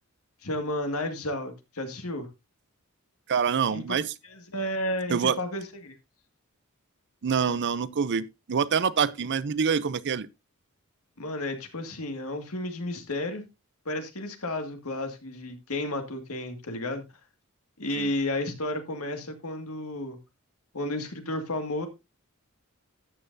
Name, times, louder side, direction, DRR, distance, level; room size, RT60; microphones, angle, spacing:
voice 1, 0.4-2.3 3.7-3.8 4.2-6.0 11.2-13.4 13.9-17.0 17.8-20.2 20.7-21.9, left 1 dB, 85° left, 2.0 m, -32 dB
voice 2, 3.3-4.1 5.1-5.4 7.2-10.3 18.0-18.1, right 6 dB, 55° right, 0.5 m, -26 dB
13.0 x 8.9 x 2.6 m
head